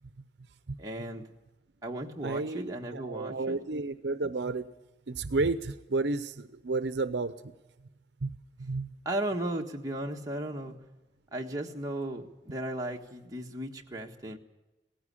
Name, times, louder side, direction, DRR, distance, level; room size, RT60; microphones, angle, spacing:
voice 1, 0.8-1.3 1.8-3.6 9.0-10.8 11.3-14.4, right 1 dB, 20° right, 0 dB, 1.6 m, -35 dB
voice 2, 2.2-4.7 5.1-7.3 8.2-9.0, right 3 dB, 65° right, 12 dB, 0.7 m, -32 dB
18.0 x 15.0 x 9.9 m, 1.0 s
head